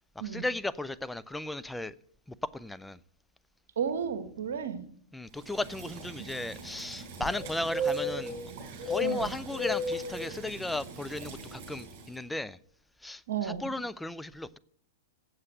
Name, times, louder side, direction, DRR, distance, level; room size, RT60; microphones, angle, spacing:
voice 1, 0.2-2.0 2.3-3.0 5.1-8.4 8.8-12.6 13.0-14.6, left 2 dB, 5° left, 0.4 m, -35 dB
voice 2, 3.8-4.9 9.0-9.4 13.3-13.7, right 7 dB, 70° right, 1.1 m, -33 dB
sound 1, 5.4-12.1, left 1 dB, 45° right, 4.4 m, -36 dB
8.0 x 7.6 x 7.8 m
hypercardioid pair, 105°, 0 cm